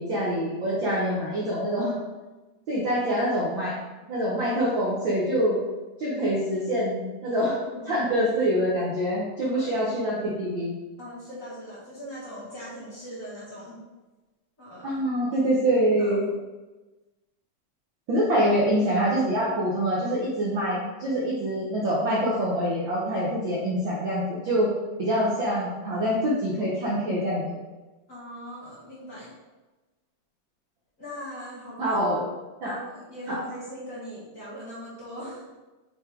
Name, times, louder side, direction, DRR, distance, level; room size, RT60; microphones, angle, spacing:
voice 1, 0.0-1.9 2.7-3.8 4.1-5.6 6.0-10.7 14.8-16.2 18.1-24.7 25.0-27.4 31.8-32.2 32.6-32.8 33.3-33.4, equal, 85° right, -6 dB, 1.0 m, -25 dB
voice 2, 7.6-8.5 9.4-9.7 11.0-13.8 14.6-15.0 15.3-15.5 16.0-16.3 28.1-29.3 31.0-32.0 32.6-35.6, equal, 35° left, -9 dB, 1.5 m, -40 dB
6.4 x 3.6 x 4.5 m, 1.2 s
omnidirectional pair, 3.7 m